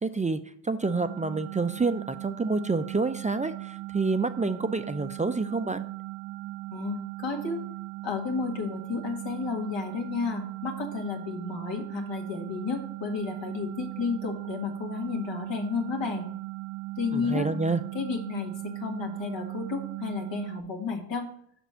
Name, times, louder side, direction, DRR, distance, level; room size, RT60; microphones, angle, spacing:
voice 1, 0.0-5.8 17.1-17.8, right 3 dB, 20° right, 10 dB, 0.4 m, -28 dB
sound 1, 0.8-20.6, right 17 dB, 75° right, 0.5 m, -38 dB
voice 2, 6.7-7.7 8.0-16.3 17.0-17.5 17.9-21.3, left 5 dB, 80° left, 2 dB, 1.9 m, -32 dB
6.1 x 4.3 x 5.6 m, 0.65 s
cardioid pair, 70°, 43 cm